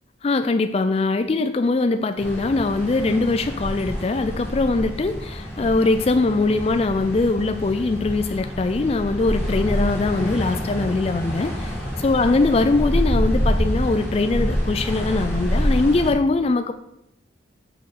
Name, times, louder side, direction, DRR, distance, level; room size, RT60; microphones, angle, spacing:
voice 1, 0.2-16.7, left 3 dB, 30° left, 9 dB, 0.3 m, -22 dB
sound 1, 2.2-16.1, equal, 5° right, 2.3 m, -27 dB
6.7 x 5.8 x 6.5 m, 0.82 s
head